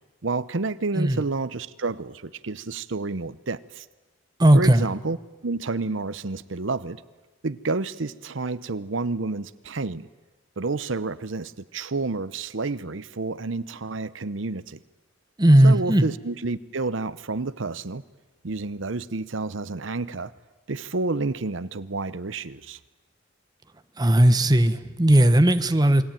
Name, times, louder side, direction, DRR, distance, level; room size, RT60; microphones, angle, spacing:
voice 1, 0.2-3.8 4.5-5.2 5.4-7.0 7.4-10.1 10.6-14.8 15.6-18.0 18.4-20.3 20.7-22.8, right 3 dB, 75° right, 15 dB, 0.8 m, -29 dB
voice 2, 4.4-4.9 15.4-16.1 24.0-26.0, right 1 dB, 20° right, 9 dB, 1.1 m, -17 dB
28.5 x 22.5 x 9.1 m, 1.1 s
head